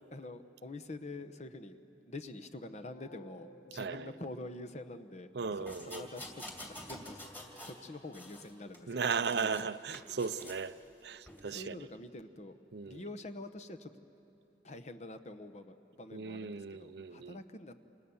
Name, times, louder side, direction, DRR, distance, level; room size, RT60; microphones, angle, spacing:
voice 1, 0.1-1.8 2.0-7.2 7.6-9.0 9.3-9.5 11.5-12.6 12.8-14.1 14.6-17.8, left 2 dB, 40° left, 1.0 m, -46 dB
sound 1, 2.5-5.1, equal, 55° left, 2.9 m, -57 dB
voice 2, 3.8-4.1 5.3-6.1 8.9-10.8 11.0-11.8 12.7-13.0 16.1-17.4, right 5 dB, 65° right, 0.6 m, -36 dB
sound 2, 5.7-7.8 8.1-9.6 9.9-10.6 11.3-11.4, left 1 dB, 10° left, 2.6 m, -48 dB
28.5 x 27.5 x 7.1 m
head